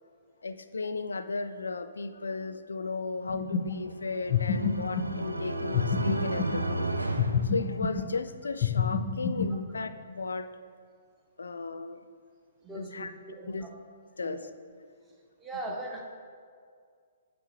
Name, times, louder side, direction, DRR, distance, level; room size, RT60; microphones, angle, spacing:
voice 1, 0.4-7.1 7.4-10.5 11.4-12.0 12.7-13.1 13.4-13.6 14.2-14.5, left 4 dB, 75° left, 12 dB, 0.3 m, -35 dB
sound 1, 3.3-3.9 4.3-5.3 5.7-6.7 7.2-8.2 8.6-9.7, left 6 dB, 35° left, 0.7 m, -29 dB
sound 2, 3.7-8.3, right 2 dB, 85° right, 0.4 m, -33 dB
voice 2, 12.6-13.7 14.2-14.5 15.4-16.0, right 2 dB, 15° right, -1 dB, 0.9 m, -40 dB
7.4 x 4.3 x 4.7 m, 2.1 s
figure-of-eight pair, 120°, 0 cm